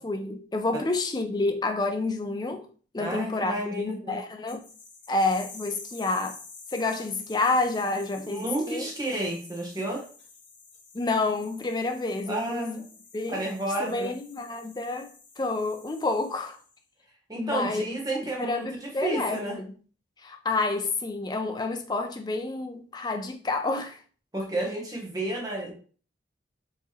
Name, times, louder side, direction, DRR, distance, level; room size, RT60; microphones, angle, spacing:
voice 1, 0.0-2.6 2.9-4.6 5.1-6.4 6.7-8.9 10.9-12.8 13.1-13.4 13.8-16.6 17.4-18.0 18.4-19.7 20.2-24.0, left 2 dB, 20° left, 0.4 m, -29 dB
voice 2, 3.0-4.1 8.2-10.0 12.3-12.8 13.3-14.1 17.3-19.6 24.3-25.7, right 1 dB, 20° right, 0.9 m, -31 dB
sound 1, 4.5-16.8, left 4 dB, 70° left, 1.5 m, -49 dB
4.6 x 2.9 x 2.9 m
head